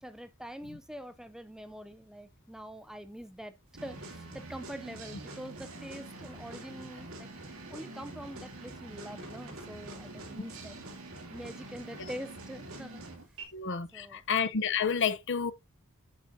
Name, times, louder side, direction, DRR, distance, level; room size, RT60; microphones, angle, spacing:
voice 1, 0.0-3.5 3.8-10.8 11.3-13.0 13.9-14.2, equal, 5° right, 0.4 m, -45 dB
sound 1, 3.7-13.4, right 2 dB, 65° right, 2.5 m, -45 dB
voice 2, 13.5-15.5, left 6 dB, 55° left, 0.7 m, -30 dB
8.8 x 7.7 x 2.7 m
head